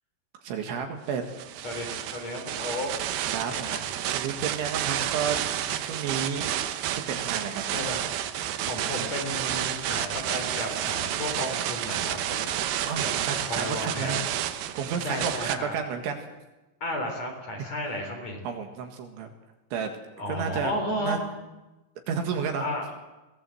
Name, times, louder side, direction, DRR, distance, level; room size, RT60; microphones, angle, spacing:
voice 1, 0.4-1.2 1.6-1.7 3.3-5.4 5.8-6.5 6.9-7.6 12.9-14.2 14.8-16.2 18.5-19.3 19.7-19.9 20.3-20.7 21.0-21.2 22.1-22.7, right 6 dB, 70° right, 5 dB, 3.8 m, -31 dB
sound 1, 1.3-15.6, right 11 dB, 85° right, 2.2 m, -30 dB
voice 2, 1.6-2.9 3.2-3.8 7.7-8.1 8.7-12.5 12.8-14.2 15.0-15.8 16.8-18.4 20.2-21.2 22.6-22.9, left 1 dB, 35° left, 2 dB, 4.7 m, -33 dB
23.0 x 18.0 x 7.7 m, 1.1 s
omnidirectional pair, 5.9 m